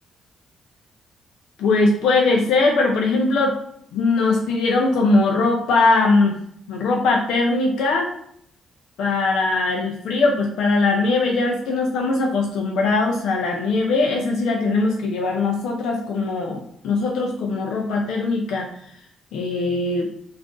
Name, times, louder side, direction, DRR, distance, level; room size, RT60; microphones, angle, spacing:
voice 1, 1.6-3.6 3.9-6.4 6.7-8.1 9.0-18.7 19.3-20.1, left 3 dB, 80° left, 1 dB, 0.4 m, -20 dB
2.4 x 2.4 x 3.6 m, 0.68 s
cardioid pair, 90°, 0 cm